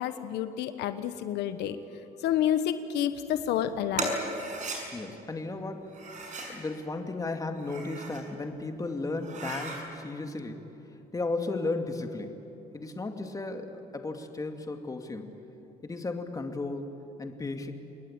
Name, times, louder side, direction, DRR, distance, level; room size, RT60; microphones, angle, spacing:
voice 1, 0.0-1.8 2.2-4.1, left 10 dB, 85° left, 10 dB, 1.2 m, -29 dB
sound 1, 3.9-4.8 5.9-6.6 7.5-8.2 8.7-8.8 9.2-9.8, right 3 dB, 45° right, 7.0 m, -36 dB
voice 2, 4.9-10.7 11.1-12.4 12.7-15.4 15.8-16.9 17.2-17.7, left 3 dB, 20° left, 5 dB, 2.3 m, -35 dB
28.5 x 20.5 x 8.9 m, 3.0 s
cardioid pair, 110°, 17 cm